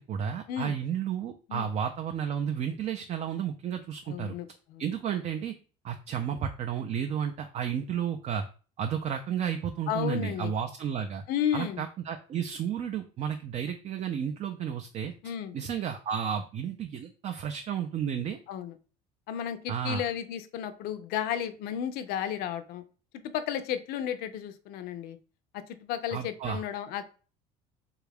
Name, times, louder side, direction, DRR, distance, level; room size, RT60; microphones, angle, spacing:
voice 1, 0.0-4.3 4.8-5.5 5.8-8.4 8.8-11.2 11.5-15.1 15.5-18.4 19.7-20.0 26.1-26.6, right 8 dB, 40° right, 6 dB, 0.4 m, -32 dB
voice 2, 4.1-4.9 9.9-10.5 11.3-11.8 15.2-15.6 18.5-18.8 19.3-22.8 23.2-25.2 25.5-27.0, left 9 dB, 65° left, 11 dB, 0.5 m, -33 dB
3.4 x 2.4 x 3.3 m, 0.37 s
supercardioid pair, 95°, 17 cm